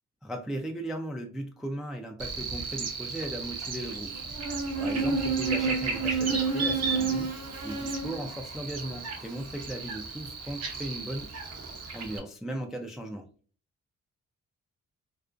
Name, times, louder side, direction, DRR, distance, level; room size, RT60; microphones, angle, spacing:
voice 1, 0.2-4.2 4.8-7.3 7.6-11.3 11.9-13.3, right 1 dB, ahead, 3 dB, 0.3 m, -37 dB
Buzz, 2.2-12.2, right 4 dB, 55° right, 0.7 m, -31 dB
2.5 x 2.1 x 2.3 m, 0.40 s
supercardioid pair, 55°, 30 cm